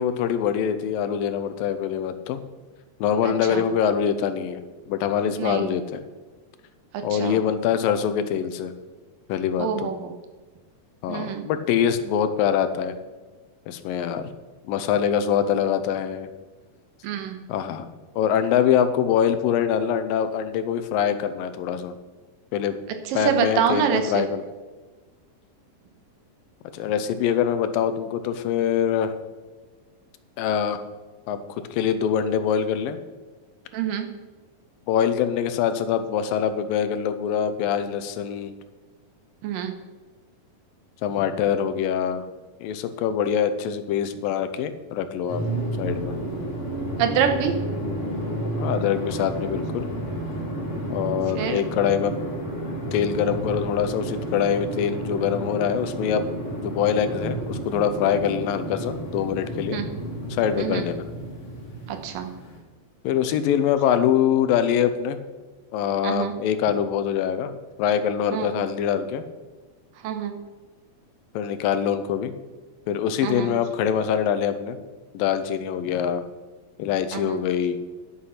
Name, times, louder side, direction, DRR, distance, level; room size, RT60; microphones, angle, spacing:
voice 1, 0.0-2.4 3.0-6.0 7.0-8.7 9.3-9.9 11.0-13.0 13.7-14.3 14.6-16.3 17.5-17.9 18.2-21.9 22.5-22.8 23.1-24.4 26.7-29.1 30.4-30.8 31.3-31.4 31.7-33.0 34.9-38.5 41.0-42.2 42.6-45.4 45.8-46.2 48.5-49.9 50.9-52.1 52.9-56.2 56.6-59.8 60.3-61.1 63.0-65.2 65.7-67.5 67.8-69.2 71.3-72.3 72.9-74.8 75.1-76.2 76.8-77.8, left 8 dB, 85° left, 10 dB, 2.5 m, -24 dB
voice 2, 3.2-3.6 5.3-5.7 7.1-7.4 9.6-10.1 11.1-11.5 17.0-17.4 23.1-24.2 33.7-34.1 39.4-39.7 47.0-47.5 51.3-51.6 59.7-59.9 60.6-60.9 61.9-62.3 66.0-66.3 68.3-68.5 70.0-70.3 73.2-73.5 77.1-77.4, right 8 dB, 75° right, 6 dB, 2.7 m, -26 dB
sound 1, 45.3-62.6, right 1 dB, 30° left, 1.5 m, -31 dB
9.8 x 8.6 x 5.7 m, 1.3 s
omnidirectional pair, 4.1 m